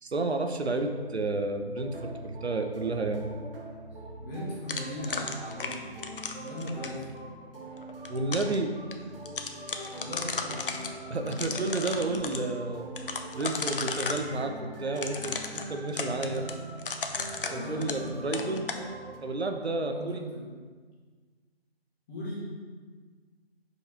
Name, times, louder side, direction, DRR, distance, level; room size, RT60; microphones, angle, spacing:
voice 1, 0.0-3.3 8.1-8.7 11.1-12.9 13.3-16.4 17.5-18.7 19.2-20.2, right 2 dB, 85° right, 5 dB, 0.9 m, -31 dB
sound 1, 1.8-19.2, right 1 dB, 60° right, 1.2 m, -43 dB
voice 2, 4.2-5.9 6.3-7.2 9.9-10.9 15.8-16.7 17.4-18.5 19.8-20.5 22.1-22.4, equal, 20° left, -8 dB, 1.8 m, -39 dB
sound 2, 4.7-7.0 7.8-8.6 8.9-9.0 9.3-10.9 11.3-12.4 13.0-14.3 15.0-18.1 18.3-18.8, left 4 dB, 55° left, 0.7 m, -34 dB
5.3 x 4.8 x 4.8 m, 1.5 s
figure-of-eight pair, 155°, 31 cm